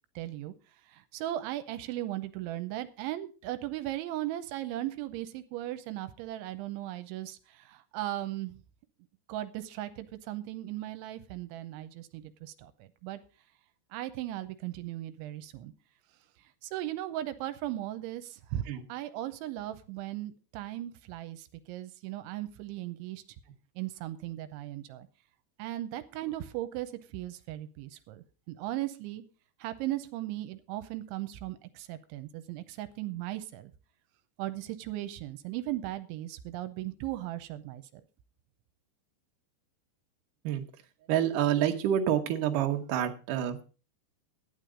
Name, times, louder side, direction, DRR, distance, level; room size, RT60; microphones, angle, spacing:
voice 1, 0.2-0.5 0.8-8.6 9.3-13.2 13.9-15.7 16.6-18.6 18.9-23.2 23.8-25.1 25.6-29.2 29.6-33.7 34.4-38.0, right 14 dB, 85° right, 11 dB, 3.1 m, -37 dB
voice 2, 41.1-43.6, right 10 dB, 65° right, 4 dB, 2.2 m, -28 dB
12.0 x 9.4 x 5.0 m, 0.35 s
omnidirectional pair, 5.4 m